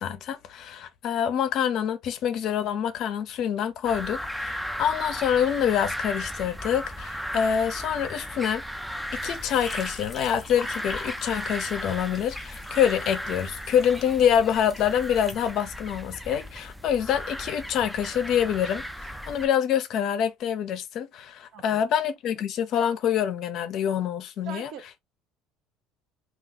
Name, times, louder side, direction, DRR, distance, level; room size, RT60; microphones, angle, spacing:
voice 1, 0.0-8.6 9.2-18.8 19.3-24.7, left 9 dB, 45° left, 0.6 m, -26 dB
sound 1, 3.8-19.5, equal, ahead, 0.3 m, -36 dB
sound 2, 9.2-15.5, left 3 dB, 15° left, 0.8 m, -42 dB
voice 2, 21.5-21.9 24.4-25.0, right 8 dB, 50° right, 0.6 m, -41 dB
2.7 x 2.3 x 3.6 m
cardioid pair, 160°, 0 cm